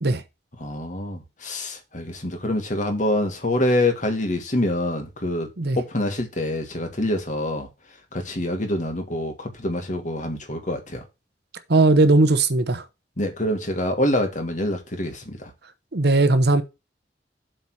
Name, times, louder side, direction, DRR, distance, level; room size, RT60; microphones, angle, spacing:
voice 1, 0.6-7.7 8.1-11.0 13.2-15.5, left 1 dB, 45° left, 2.2 m, -26 dB
voice 2, 11.7-12.8 15.9-16.6, right 2 dB, 65° right, 1.0 m, -18 dB
7.8 x 4.2 x 6.3 m
head